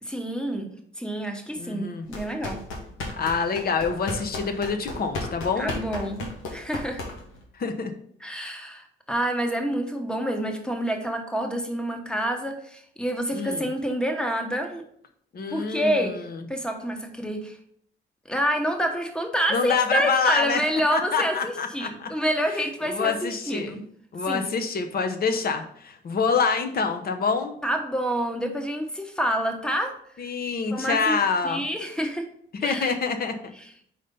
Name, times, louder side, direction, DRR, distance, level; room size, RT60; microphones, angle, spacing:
voice 1, 0.0-2.6 5.6-7.0 8.2-14.8 15.5-16.2 16.5-17.6 18.3-23.8 24.3-24.5 27.6-29.9 30.7-31.2 31.4-32.3 32.6-33.0 33.6-33.7, equal, 5° left, 4 dB, 1.1 m, -28 dB
voice 2, 1.6-2.1 3.2-5.7 7.6-7.9 13.3-13.7 15.3-16.5 19.5-20.6 20.9-22.1 22.5-23.8 24.1-27.5 30.2-31.6 32.6-33.5, left 5 dB, 50° left, 6 dB, 1.0 m, -26 dB
sound 1, 2.1-7.4, left 2 dB, 90° left, 1.5 m, -34 dB
5.0 x 4.3 x 5.3 m, 0.66 s
cardioid pair, 90°, 20 cm